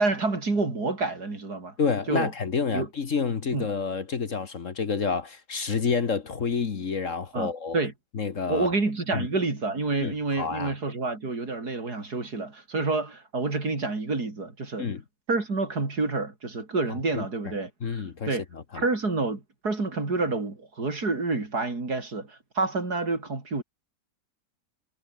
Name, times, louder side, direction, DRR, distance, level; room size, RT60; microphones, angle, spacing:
voice 1, 0.0-1.7 2.1-2.3 2.7-2.9 3.5-3.7 7.3-7.9 8.5-14.9 15.3-17.7 18.3-18.4 18.7-23.6, right 3 dB, 65° right, 4.7 m, -28 dB
voice 2, 1.8-7.8 8.1-8.7 9.1-9.3 10.0-10.7 14.8-15.0 17.1-17.2 17.8-18.8, left 5 dB, 50° left, 1.7 m, -29 dB
omnidirectional pair, 1.8 m